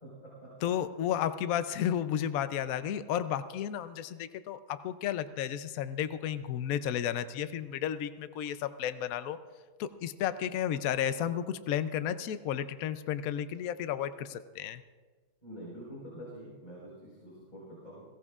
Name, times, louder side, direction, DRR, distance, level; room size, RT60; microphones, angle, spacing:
voice 1, 0.0-0.5 15.4-18.0, equal, 20° left, -8 dB, 4.7 m, -46 dB
voice 2, 0.6-9.4 9.8-14.8, left 10 dB, 85° left, 12 dB, 0.7 m, -33 dB
21.0 x 17.0 x 2.4 m, 1.4 s
omnidirectional pair, 2.2 m